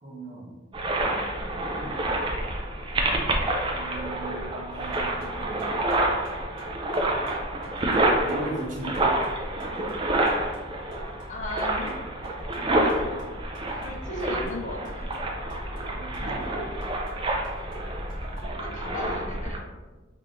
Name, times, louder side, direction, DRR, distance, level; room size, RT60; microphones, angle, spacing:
voice 1, 0.0-0.6 1.7-2.1 3.7-5.5 8.2-9.1 15.7-16.7 18.5-19.4, right 2 dB, 45° right, -2 dB, 0.8 m, -38 dB
sound 1, 0.7-19.6, right 1 dB, 25° right, 0.4 m, -28 dB
sound 2, 4.7-18.4, right 1 dB, 80° right, 1.4 m, -49 dB
voice 2, 11.3-12.0 12.6-13.1 13.7-15.1 16.2-16.3 18.4-19.7, left 2 dB, 40° left, 1 dB, 0.5 m, -37 dB
3.5 x 3.0 x 2.5 m, 1.2 s
head